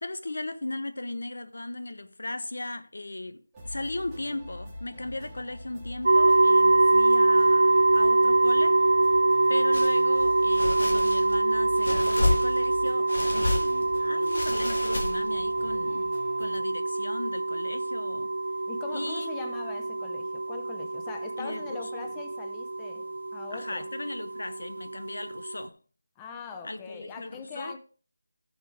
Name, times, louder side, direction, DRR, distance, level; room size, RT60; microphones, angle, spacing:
voice 1, 0.0-8.8 9.5-18.3 18.9-19.3 21.4-22.1 23.5-25.8 26.6-27.8, left 2 dB, 75° left, 1.0 m, -37 dB
sound 1, 3.5-16.6, equal, 5° right, 2.5 m, -45 dB
sound 2, 6.0-25.7, right 2 dB, 60° right, 0.5 m, -24 dB
sound 3, 9.7-10.0 10.5-11.4 11.8-12.7 13.1-13.8 14.3-15.4, left 2 dB, 60° left, 2.3 m, -30 dB
voice 2, 18.7-23.9 26.2-27.8, left 6 dB, 10° left, 0.7 m, -41 dB
14.5 x 6.6 x 3.4 m
figure-of-eight pair, 170°, 0 cm